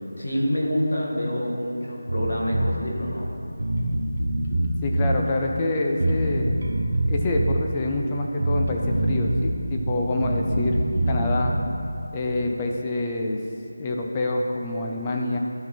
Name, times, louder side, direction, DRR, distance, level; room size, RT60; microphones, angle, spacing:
voice 1, 0.2-3.3, equal, 85° left, -2 dB, 2.1 m, -26 dB
Bass guitar, 2.1-2.8 3.2-3.3 3.6-5.2 6.0-7.6 8.4-9.5 9.8-11.7, right 1 dB, 80° right, 1.4 m, -24 dB
voice 2, 4.8-6.7 7.1-10.8 11.1-11.6 12.1-13.4 13.8-15.4, left 2 dB, 15° left, 1 dB, 0.4 m, -26 dB
12.0 x 5.8 x 4.4 m, 2.7 s
figure-of-eight pair, 175°, 0 cm